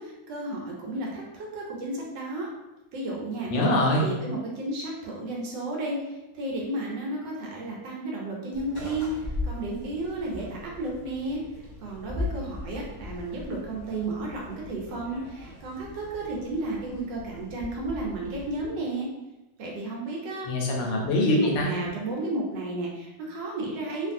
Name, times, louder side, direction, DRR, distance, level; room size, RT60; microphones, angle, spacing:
voice 1, 0.0-2.5 2.9-3.5 3.9-11.4 11.8-19.1 19.6-20.5 21.4-24.1, right 2 dB, 75° right, -2 dB, 1.3 m, -33 dB
voice 2, 3.5-4.2 20.4-21.8, left 1 dB, 75° left, -1 dB, 1.2 m, -23 dB
sound 1, 8.5-18.7, left 2 dB, 30° right, 0.4 m, -39 dB
2.9 x 2.5 x 2.5 m, 0.98 s
omnidirectional pair, 2.1 m